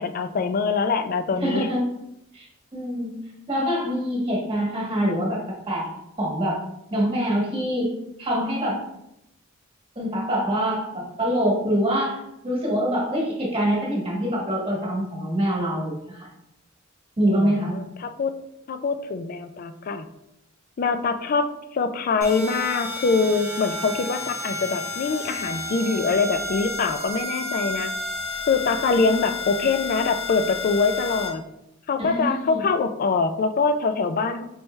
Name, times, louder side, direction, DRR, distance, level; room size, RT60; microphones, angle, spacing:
voice 1, 0.0-1.7 17.3-18.3 18.7-20.1 20.8-27.9 28.5-31.4 31.9-34.4, left 4 dB, 40° left, 10 dB, 0.3 m, -24 dB
voice 2, 1.4-1.8 2.3-3.1 3.5-5.4 5.7-5.9 6.2-6.6 6.9-7.9 8.2-8.8 9.9-16.3 17.2-17.8 32.0-32.6, equal, 25° right, -3 dB, 1.3 m, -25 dB
sound 1, 22.2-31.3, left 2 dB, 90° left, 1.3 m, -31 dB
4.6 x 3.2 x 3.1 m, 0.85 s
head